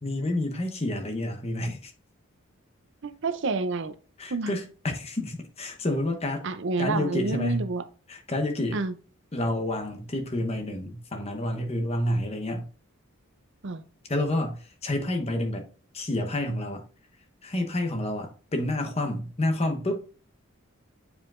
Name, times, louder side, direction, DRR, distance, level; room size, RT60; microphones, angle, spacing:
voice 1, 0.0-1.9 4.2-6.5 6.8-7.7 8.1-8.8 9.3-12.7 14.1-15.7 15.9-16.8 17.4-20.0, left 1 dB, 30° left, 0.9 m, -29 dB
voice 2, 3.0-3.9 4.3-4.5 6.4-7.8 8.7-8.9 13.6-13.8, right 3 dB, 55° right, 0.5 m, -29 dB
8.3 x 4.7 x 2.5 m
head